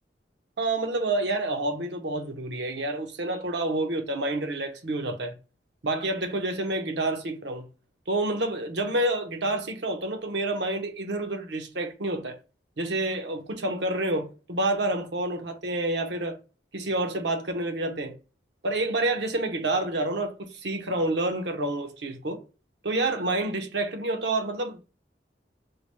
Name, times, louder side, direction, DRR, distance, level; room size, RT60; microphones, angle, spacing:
voice 1, 0.6-5.3 5.8-7.7 8.1-12.4 12.8-16.4 16.7-18.2 18.6-22.4 22.8-24.8, right 2 dB, 75° right, 0.9 m, -28 dB
4.8 x 2.2 x 3.1 m
head